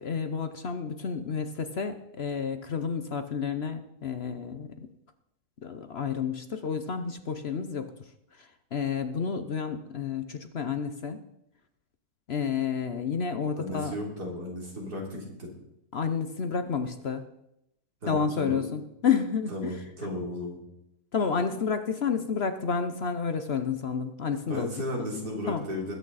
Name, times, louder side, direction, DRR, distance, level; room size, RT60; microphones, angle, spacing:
voice 1, 0.0-4.9 5.6-7.9 8.4-11.2 12.3-13.9 15.9-17.3 18.1-19.7 21.1-24.7 25.5-25.6, left 6 dB, 50° left, 9 dB, 0.9 m, -30 dB
voice 2, 13.6-15.5 18.0-18.6 19.5-20.6 24.5-25.9, left 1 dB, 90° right, -1 dB, 4.0 m, -34 dB
20.5 x 8.8 x 4.1 m, 0.82 s
omnidirectional pair, 1.7 m